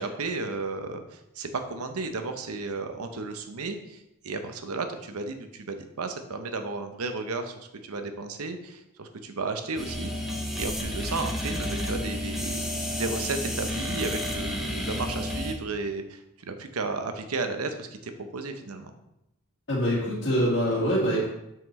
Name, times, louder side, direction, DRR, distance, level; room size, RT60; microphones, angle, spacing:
voice 1, 0.0-10.1 10.5-18.9, right 3 dB, 85° right, 7 dB, 0.8 m, -33 dB
sound 1, 9.8-15.5, left 1 dB, ahead, 1.1 m, -31 dB
voice 2, 19.7-21.3, equal, 55° left, -10 dB, 1.9 m, -24 dB
7.6 x 5.8 x 3.2 m, 0.85 s
head